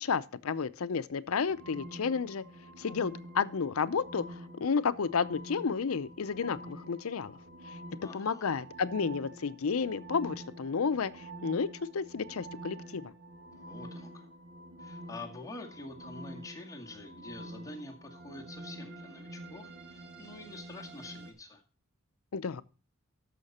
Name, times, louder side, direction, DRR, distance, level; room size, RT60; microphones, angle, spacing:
voice 1, 0.0-2.4 2.8-4.2 4.6-7.4 7.7-7.8 8.1-13.1 22.3-22.6, left 5 dB, 75° left, 0.6 m, -31 dB
sound 1, 1.4-21.3, right 1 dB, 55° right, 2.0 m, -47 dB
voice 2, 8.0-8.6 13.5-14.3 14.8-21.6, left 2 dB, 15° left, 2.0 m, -47 dB
13.0 x 5.8 x 4.2 m
head